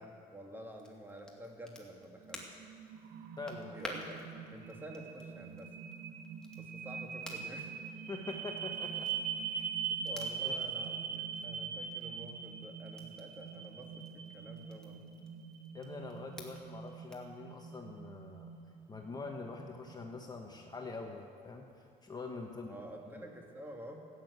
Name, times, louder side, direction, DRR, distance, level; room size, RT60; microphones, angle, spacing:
voice 1, 0.0-2.5 3.7-4.2 4.5-5.7 6.6-7.7 10.0-15.0 22.6-24.1, right 1 dB, 10° right, 1 dB, 2.2 m, -49 dB
Crackle, 0.7-17.3, left 1 dB, 5° left, 2.2 m, -53 dB
sound 1, 2.2-20.3, right 7 dB, 75° right, 1.1 m, -42 dB
voice 2, 3.4-3.9 8.1-9.1 9.5-9.7 10.4-10.5 15.7-18.5 18.9-21.7 22.0-22.7 23.2-23.3, left 3 dB, 25° left, 2 dB, 1.2 m, -44 dB
14.5 x 9.5 x 8.0 m, 2.5 s
cardioid pair, 110°, 17 cm